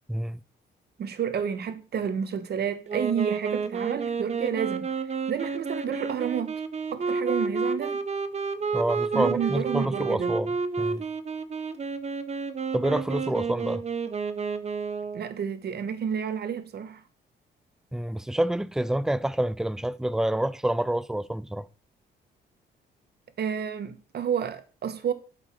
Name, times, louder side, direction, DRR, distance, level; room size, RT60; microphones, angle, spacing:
voice 1, 0.1-0.4 8.7-10.5 10.8-11.0 12.7-13.8 17.9-21.6, right 1 dB, 5° right, 0.4 m, -27 dB
voice 2, 1.0-4.9 5.3-6.5 6.9-8.0 9.1-10.3 15.1-17.0 23.4-25.1, right 8 dB, 55° right, 1.3 m, -30 dB
Wind instrument woodwind instrument, 2.9-15.3, right 5 dB, 35° right, 0.9 m, -30 dB
8.3 x 5.2 x 5.8 m
cardioid pair, 90°, 20 cm